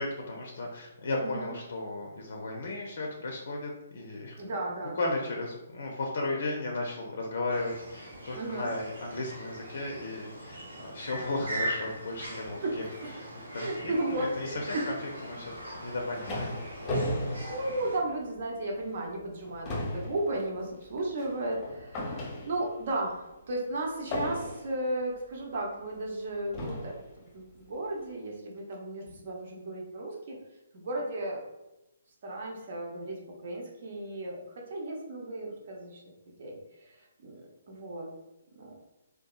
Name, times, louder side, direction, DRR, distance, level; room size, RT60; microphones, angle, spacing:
voice 1, 0.0-4.4 4.9-12.8 13.2-13.3 13.5-15.0 15.2-16.6 17.1-17.4, left 2 dB, 65° left, 0 dB, 0.4 m, -35 dB
voice 2, 1.2-1.5 4.4-5.0 8.3-8.7 12.6-13.1 13.5-14.9 17.5-27.0 27.3-30.4 30.7-31.5 32.2-38.1 38.5-38.7, right 1 dB, 55° right, -1 dB, 0.7 m, -35 dB
sound 1, 7.5-18.0, right 1 dB, 85° right, 0.9 m, -41 dB
sound 2, 15.7-18.4 18.8-19.0 19.3-22.9 24.1-24.9 25.7-25.8 26.5-27.1, left 1 dB, 25° left, 0.6 m, -35 dB
2.7 x 2.3 x 2.3 m, 0.93 s
hypercardioid pair, 140°, 0 cm